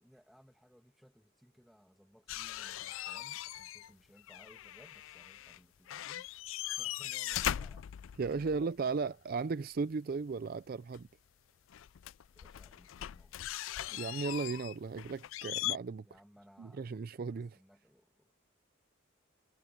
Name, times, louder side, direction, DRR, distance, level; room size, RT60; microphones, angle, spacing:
voice 1, 0.0-6.3 6.7-9.2 12.3-13.7 16.0-16.8 17.3-18.3, equal, ahead, 1.9 m, -62 dB
sound 1, 2.3-3.9 4.2-5.6 5.9-8.6 10.9-11.0 11.7-15.8, left 13 dB, 70° left, 0.4 m, -40 dB
voice 2, 8.2-11.1 13.9-16.1 16.6-17.6, right 4 dB, 45° right, 0.4 m, -36 dB
head